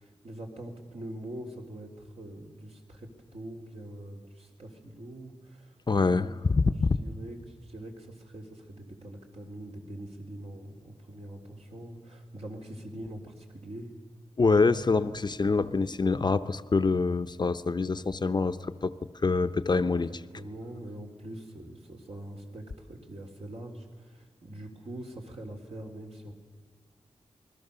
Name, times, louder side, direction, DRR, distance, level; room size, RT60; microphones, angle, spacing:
voice 1, 0.0-5.8 6.0-6.3 6.7-13.9 20.3-26.3, right 1 dB, 65° right, 1 dB, 3.8 m, -43 dB
voice 2, 5.9-7.0 14.4-19.0 19.2-20.1, left 4 dB, 40° left, 11 dB, 0.7 m, -25 dB
27.5 x 21.0 x 6.9 m, 1.5 s
wide cardioid pair, 115°, 11 cm